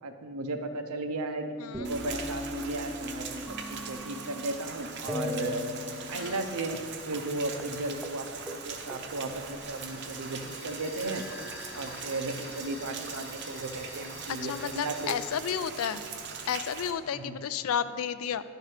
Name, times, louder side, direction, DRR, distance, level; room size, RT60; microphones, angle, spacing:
voice 1, 0.0-5.6 6.1-11.2 11.7-15.2 17.1-17.4, right 2 dB, 85° right, 7 dB, 0.7 m, -35 dB
voice 2, 1.6-1.9 6.1-6.5 14.3-16.0 16.5-18.4, left 8 dB, 75° left, 13 dB, 0.3 m, -32 dB
sound 1, 1.7-4.7 5.1-6.9 7.2-7.3 7.6-7.8 8.0-8.2 8.5-10.2 10.9-12.5 13.2-14.2, left 2 dB, 5° right, 0.3 m, -40 dB
Rain, 1.8-16.9, right 5 dB, 50° right, 0.6 m, -41 dB
sound 2, 9.0-15.4, left 4 dB, 55° left, 0.8 m, -50 dB
10.5 x 4.6 x 4.9 m, 2.1 s
head